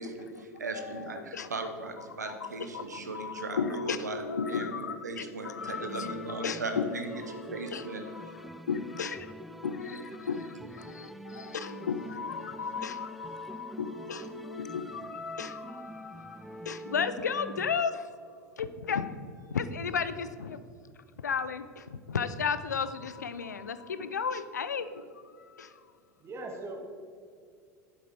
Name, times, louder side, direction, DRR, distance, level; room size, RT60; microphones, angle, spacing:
voice 1, 0.0-4.2 4.5-7.1 7.5-8.0, right 3 dB, 90° right, 6 dB, 0.9 m, -38 dB
voice 2, 3.1-5.0 5.4-7.4 7.7-7.8 8.7-9.2 9.6-10.4 11.5-14.2 14.5-15.6 16.7-17.9 18.6-19.1 19.5-20.5 21.2-21.6 22.1-24.9, left 6 dB, 85° left, 13 dB, 0.5 m, -33 dB
sound 1, 5.6-17.8, equal, ahead, 0.3 m, -45 dB
voice 3, 26.2-26.8, right 2 dB, 30° right, 2 dB, 1.8 m, -40 dB
9.1 x 7.6 x 4.5 m, 2.2 s
hypercardioid pair, 80°, 9 cm